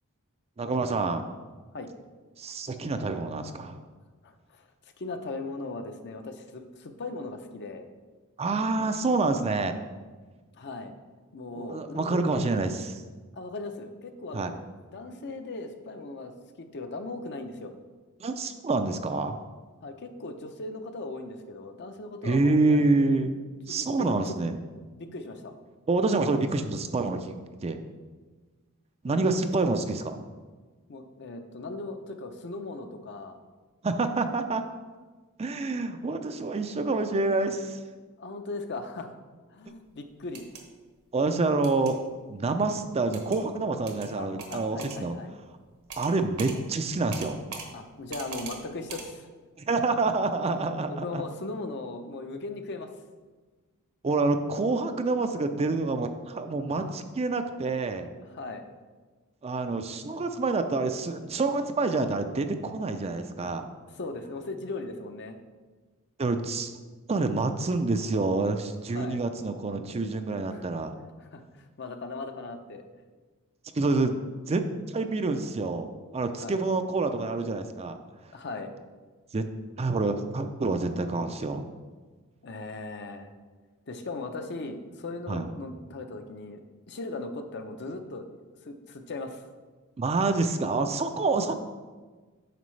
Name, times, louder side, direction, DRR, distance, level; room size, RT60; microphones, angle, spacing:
voice 1, 0.6-1.3 2.4-3.8 8.4-9.8 11.5-12.9 14.3-14.5 18.2-19.4 22.2-23.4 23.7-24.5 25.9-27.8 29.0-30.2 33.8-34.6 35.4-37.8 41.1-42.0 42.3-45.1 46.0-47.4 49.7-51.2 54.0-58.1 59.4-63.6 66.2-66.7 67.1-70.9 73.7-74.2 74.4-78.0 79.3-79.4 79.8-81.7 85.3-85.5 90.0-91.5, right 3 dB, 30° right, 7 dB, 0.4 m, -27 dB
voice 2, 4.2-4.7 5.0-7.9 10.5-10.9 11.3-12.6 13.3-14.5 14.9-17.7 19.8-23.1 23.7-24.3 25.0-25.5 29.1-29.6 30.9-33.4 37.4-37.5 38.2-39.2 39.5-40.4 44.1-45.3 47.7-49.3 50.8-52.9 56.7-56.9 58.3-58.6 63.4-63.5 64.0-65.4 68.9-69.2 70.5-70.7 71.2-72.9 76.4-76.6 78.3-78.7 82.4-83.3 83.9-86.6 86.9-88.3 88.6-89.4 91.5-91.6, left 3 dB, 50° left, 6 dB, 0.7 m, -38 dB
sound 1, 40.2-40.6 41.6-41.9 43.1-43.4 43.9-44.1 44.4-45.0 45.9-46.1 46.4-46.6 47.1-47.7 48.1-48.6 48.9-49.1, right 4 dB, 75° right, 1.2 m, -40 dB
9.1 x 6.1 x 3.2 m, 1.4 s
head